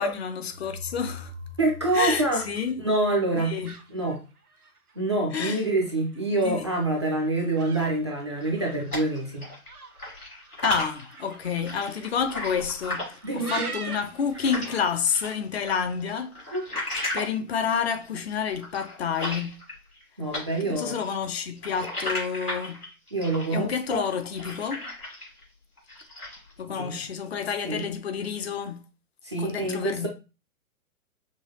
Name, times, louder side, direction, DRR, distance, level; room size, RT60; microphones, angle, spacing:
voice 1, 0.0-1.3 1.9-2.7 3.4-3.7 5.3-5.6 6.4-6.7 10.6-16.5 17.1-19.6 20.6-22.8 23.5-24.9 26.6-28.8 29.3-30.1, left 7 dB, 45° left, 0.7 m, -29 dB
sound 1, 0.5-3.4, left 1 dB, 60° right, 0.6 m, -42 dB
voice 2, 1.6-2.4 2.8-3.6 3.9-4.2 5.0-9.5 13.2-13.7 16.5-16.6 20.2-21.0 23.1-24.1 26.8-27.0 27.6-27.9 29.2-30.1, right 2 dB, 20° right, 0.3 m, -26 dB
sound 2, 3.4-15.3, right 4 dB, 90° right, 0.9 m, -44 dB
sound 3, 8.4-9.7 10.0-14.8 15.1-20.0 20.3-25.4 25.8-26.5, left 1 dB, 85° left, 2.4 m, -35 dB
5.4 x 2.2 x 2.9 m
figure-of-eight pair, 115°, 44 cm